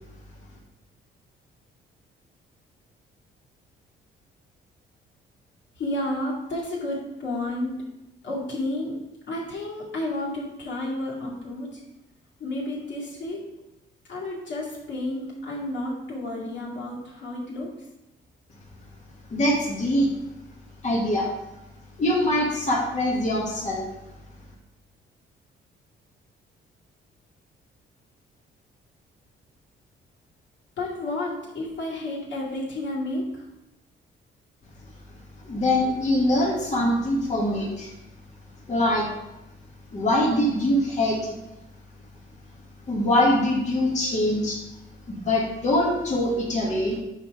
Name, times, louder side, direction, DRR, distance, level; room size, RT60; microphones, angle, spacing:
voice 1, 5.8-7.7 8.2-8.9 9.3-11.8 12.4-13.4 14.1-17.7 30.8-33.5, left 1 dB, 65° left, -5 dB, 2.4 m, -31 dB
voice 2, 19.3-20.1 20.8-21.3 22.0-23.9 35.4-37.9 38.7-39.1 39.9-41.3 42.9-44.6 45.1-47.0, left 1 dB, 35° left, -5 dB, 1.4 m, -23 dB
5.5 x 4.3 x 4.8 m, 0.94 s
cardioid pair, 90°, 20 cm